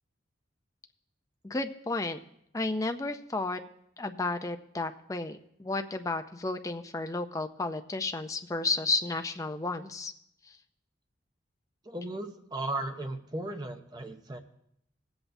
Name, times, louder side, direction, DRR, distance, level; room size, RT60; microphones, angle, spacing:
voice 1, 1.4-2.2 2.5-3.6 4.0-10.1, left 3 dB, 15° left, 7 dB, 0.5 m, -32 dB
voice 2, 11.8-14.4, right 2 dB, 20° right, 5 dB, 0.7 m, -36 dB
21.0 x 7.9 x 2.7 m, 0.73 s
head